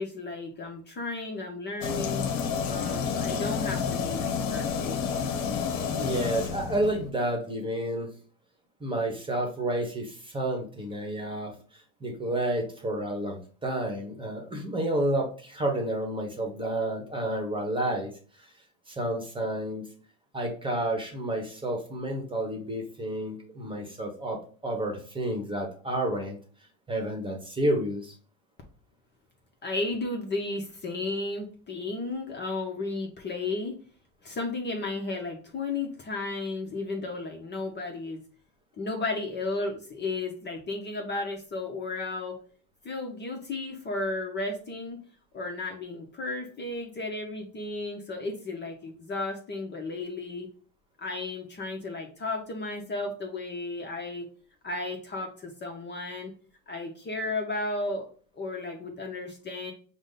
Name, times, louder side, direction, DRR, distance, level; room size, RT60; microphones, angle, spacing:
voice 1, 0.0-2.2 2.7-5.0 29.6-33.8 34.2-38.2 38.8-42.4 42.8-45.0 45.3-50.5 51.0-54.2 54.6-56.3 56.7-58.1 58.4-59.7, left 2 dB, 30° left, 1 dB, 0.8 m, -34 dB
sound 1, 1.8-7.1, left 6 dB, 70° left, 0.8 m, -30 dB
voice 2, 6.0-8.1 8.8-11.5 12.0-18.1 18.4-18.5 18.9-19.9 20.3-26.4 26.9-28.1, right 1 dB, 15° right, 2 dB, 1.2 m, -30 dB
5.0 x 2.2 x 3.9 m, 0.41 s
supercardioid pair, 95°, 38 cm